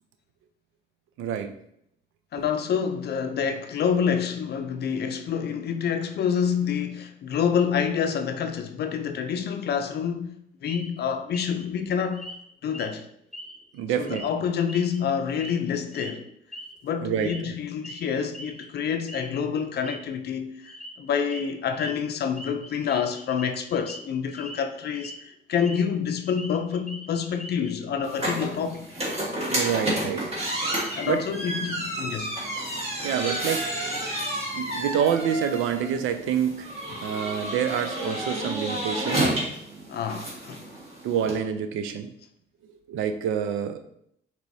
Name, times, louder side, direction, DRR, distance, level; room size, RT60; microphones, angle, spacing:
voice 1, 1.2-1.5 13.7-14.3 17.0-17.5 29.4-30.3 31.1-31.3 33.0-33.7 34.5-36.7 37.0-39.3 41.0-42.1 42.9-43.8, right 8 dB, 90° right, 0.4 m, -27 dB
voice 2, 2.3-10.3 10.6-12.2 12.6-13.1 14.0-16.3 16.8-28.8 30.9-32.3 39.9-40.6, left 7 dB, 55° left, 0.4 m, -27 dB
sound 1, 10.7-10.9 11.3-11.6 12.1-12.4 12.7-12.9 13.3-13.8 14.1-14.3 14.7-15.6 15.9-16.1 16.5-16.7 17.2-17.5 17.8-18.1 18.3-18.6 19.1-19.3 19.6-20.0 20.6-20.9 21.2-21.4 21.7-21.9 22.4-24.0 24.3-24.6 24.9-25.8 26.1-27.7, equal, ahead, 0.6 m, -41 dB
sound 2, 28.0-41.4, right 1 dB, 30° right, 1.4 m, -31 dB
4.6 x 2.9 x 2.6 m
cardioid pair, 90°, 20 cm